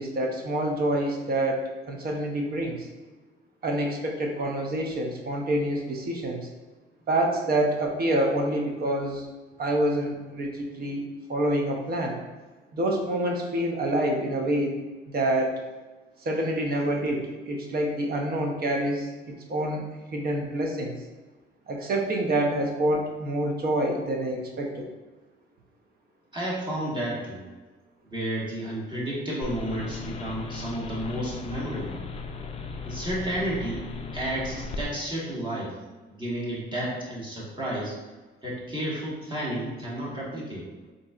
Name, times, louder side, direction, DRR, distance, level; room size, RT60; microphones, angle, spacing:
voice 1, 0.0-2.9 3.6-6.5 7.1-9.3 9.6-11.0 11.3-12.2 12.7-14.8 15.1-15.6 16.2-21.0 21.7-24.9, right 1 dB, 50° right, 1 dB, 0.7 m, -27 dB
voice 2, 26.3-27.4 28.1-32.0 32.8-33.9 34.1-35.7 36.1-37.9 38.4-40.6, right 1 dB, 25° right, -6 dB, 1.4 m, -31 dB
sound 1, 29.4-34.9, left 4 dB, 30° left, 0.4 m, -37 dB
3.9 x 2.7 x 2.4 m, 1.2 s
cardioid pair, 90°, 20 cm